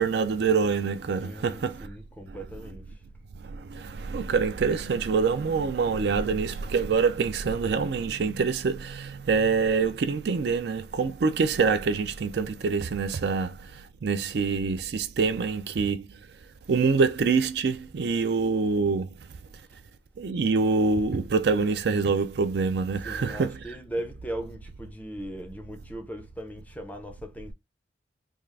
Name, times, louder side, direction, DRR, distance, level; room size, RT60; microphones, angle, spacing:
voice 1, 0.0-1.9 2.3-2.4 3.3-16.2 16.7-19.1 20.2-23.6, right 5 dB, 60° right, 0.4 m, -25 dB
voice 2, 1.2-3.0 23.0-27.5, right 1 dB, 10° left, 0.5 m, -38 dB
3.6 x 2.4 x 3.2 m
head